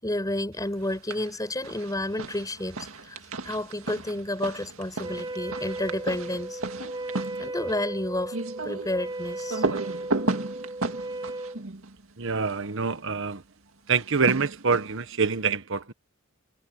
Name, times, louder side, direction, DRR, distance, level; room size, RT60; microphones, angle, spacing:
voice 1, 0.0-2.8 3.0-6.6 7.4-8.4 8.6-9.6, left 1 dB, 20° left, 5.8 m, -31 dB
sound 1, 0.8-1.3 1.6-12.6 13.9-15.1, right 2 dB, 90° right, 2.0 m, -34 dB
Wind instrument woodwind instrument, 5.0-11.6, right 2 dB, 25° right, 2.7 m, -36 dB
voice 2, 12.2-13.4 13.9-15.9, right 5 dB, 65° right, 1.4 m, -26 dB
head